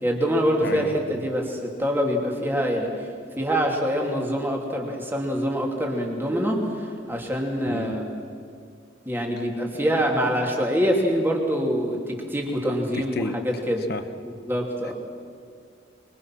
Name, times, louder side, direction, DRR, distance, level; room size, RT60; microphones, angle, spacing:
voice 1, 0.0-3.1 3.4-8.1 9.0-13.9 14.2-14.9, equal, 10° right, 0 dB, 2.9 m, -25 dB
voice 2, 0.6-0.9 7.7-7.9 12.9-13.3 13.9-14.0 14.8-14.9, left 2 dB, 50° left, 10 dB, 1.1 m, -31 dB
24.5 x 23.5 x 6.2 m, 2.2 s
head